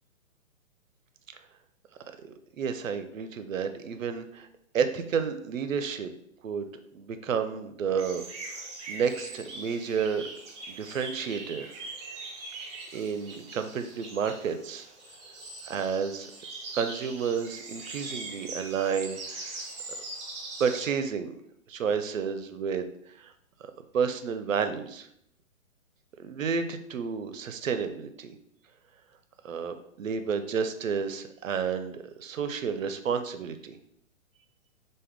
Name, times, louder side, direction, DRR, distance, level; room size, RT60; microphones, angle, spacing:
voice 1, 2.2-4.5 4.7-6.1 6.4-6.7 6.9-8.2 8.5-10.2 10.7-11.8 12.9-14.9 15.7-16.3 16.7-19.7 20.6-21.4 21.7-22.8 23.2-23.3 23.6-25.1 26.2-28.4 29.4-33.8, right 6 dB, 70° right, 9 dB, 0.5 m, -31 dB
sound 1, 8.0-20.9, right 3 dB, 20° right, 0.6 m, -42 dB
3.5 x 2.1 x 3.3 m, 0.71 s
figure-of-eight pair, 120°, 41 cm